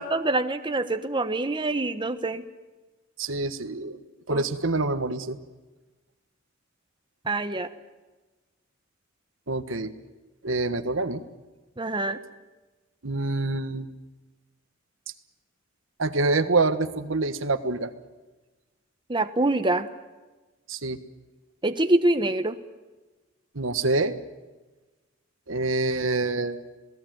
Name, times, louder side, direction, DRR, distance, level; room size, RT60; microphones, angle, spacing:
voice 1, 0.0-2.4 4.3-4.4 7.2-7.7 11.8-12.2 19.1-19.9 21.6-22.6, right 2 dB, 25° right, 8 dB, 1.1 m, -25 dB
voice 2, 3.2-4.0 4.3-5.4 9.5-9.9 10.4-11.2 13.0-13.9 16.0-17.9 20.7-21.0 23.5-24.2 25.5-26.6, right 3 dB, 85° right, 9 dB, 1.5 m, -26 dB
27.0 x 19.0 x 9.3 m, 1.2 s
head